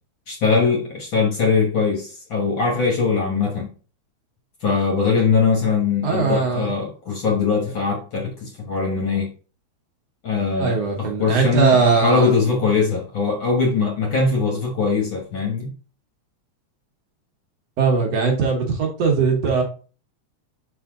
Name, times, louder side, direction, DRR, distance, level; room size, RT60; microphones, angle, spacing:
voice 1, 0.3-3.7 4.6-9.3 10.2-15.7, left 4 dB, 50° left, 1.6 m, -21 dB
voice 2, 6.0-6.7 10.6-12.4 17.8-19.6, right 5 dB, 60° right, 2.2 m, -20 dB
5.9 x 4.7 x 3.7 m
omnidirectional pair, 3.4 m